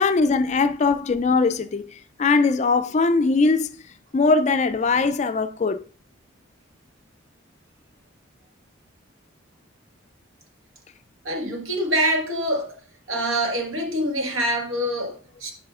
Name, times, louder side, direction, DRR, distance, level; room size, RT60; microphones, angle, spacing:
voice 1, 0.0-3.8 4.1-5.8, left 4 dB, 35° left, 0.3 m, -21 dB
voice 2, 11.2-12.8 13.1-15.5, right 1 dB, 85° right, 1.6 m, -25 dB
9.4 x 4.8 x 2.4 m
head